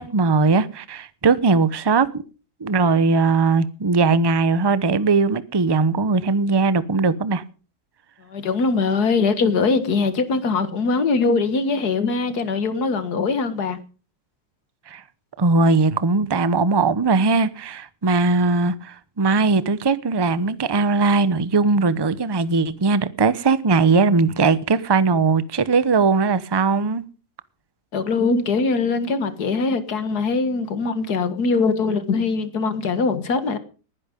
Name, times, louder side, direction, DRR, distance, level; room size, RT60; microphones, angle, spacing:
voice 1, 0.0-2.2 2.6-7.4 14.9-15.0 15.4-27.0, right 4 dB, 25° right, 0.5 m, -19 dB
voice 2, 8.3-13.8 27.9-33.6, left 4 dB, 65° left, 2.1 m, -22 dB
20.0 x 10.5 x 5.2 m
omnidirectional pair, 1.8 m